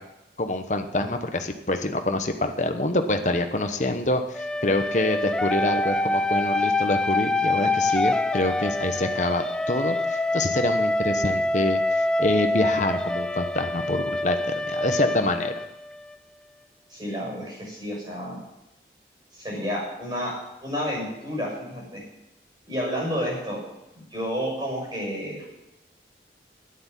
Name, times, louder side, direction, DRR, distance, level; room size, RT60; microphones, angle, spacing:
voice 1, 0.4-15.5, left 2 dB, 40° left, 6 dB, 1.0 m, -26 dB
sound 1, 4.3-16.1, left 2 dB, 5° left, 0.4 m, -25 dB
voice 2, 16.9-18.4 19.4-20.3 20.6-22.0 22.7-23.6 24.1-25.4, equal, 25° right, -3 dB, 6.5 m, -30 dB
9.8 x 9.7 x 8.2 m, 0.92 s
head